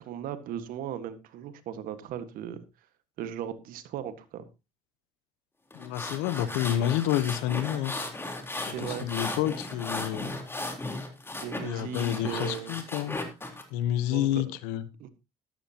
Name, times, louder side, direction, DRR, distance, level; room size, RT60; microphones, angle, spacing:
voice 1, 0.0-2.6 3.2-4.5 8.7-9.3 11.4-12.8 14.1-14.5 15.0-15.1, right 9 dB, 70° right, 12 dB, 1.7 m, -37 dB
voice 2, 5.7-7.9 8.8-10.3 11.6-13.2 13.7-14.8, left 12 dB, 85° left, 15 dB, 1.1 m, -29 dB
sound 1, 5.7-13.6, left 2 dB, 15° left, 3.8 m, -36 dB
13.0 x 13.0 x 2.9 m, 0.26 s
supercardioid pair, 75°, 15 cm